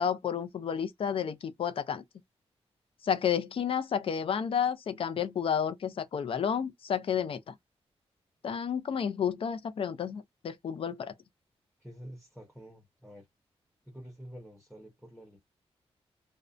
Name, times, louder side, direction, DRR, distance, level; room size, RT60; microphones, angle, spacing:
voice 1, 0.0-2.0 3.0-7.5 8.4-11.1, left 8 dB, 55° left, 0.5 m, -31 dB
voice 2, 11.8-13.3 13.9-15.4, equal, ahead, 0.8 m, -48 dB
2.6 x 2.1 x 2.4 m
wide cardioid pair, 170°, 11 cm